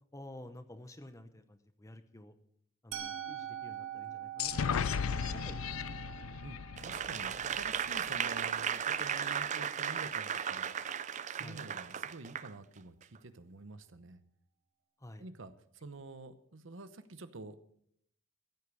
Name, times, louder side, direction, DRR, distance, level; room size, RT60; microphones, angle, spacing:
voice 1, 0.1-2.4 2.8-6.1 11.4-11.6 15.0-15.3, left 1 dB, 15° left, 10 dB, 0.8 m, -52 dB
Musical instrument, 2.9-8.8, right 10 dB, 85° right, 1.5 m, -45 dB
sound 1, 4.4-8.1, left 7 dB, 90° left, 0.4 m, -36 dB
Applause / Crowd, 6.8-12.5 13.0-13.2, right 8 dB, 35° right, 0.4 m, -35 dB
voice 2, 6.8-10.7 11.3-14.2 15.2-17.6, right 3 dB, 65° right, 12 dB, 0.9 m, -48 dB
14.5 x 8.5 x 6.3 m, 0.70 s
head